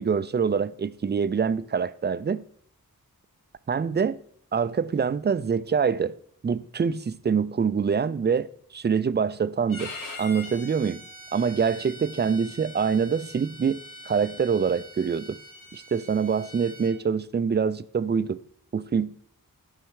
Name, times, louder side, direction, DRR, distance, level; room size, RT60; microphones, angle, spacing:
voice 1, 0.0-2.4 3.7-4.2 4.5-6.2 6.4-9.9 10.2-11.0 11.3-15.4 15.7-18.4 18.7-19.2, right 6 dB, 30° right, 0.4 m, -25 dB
Bowed string instrument, 9.7-16.9, left 1 dB, 65° left, 2.3 m, -43 dB
12.5 x 5.6 x 4.7 m
wide cardioid pair, 105°, 35 cm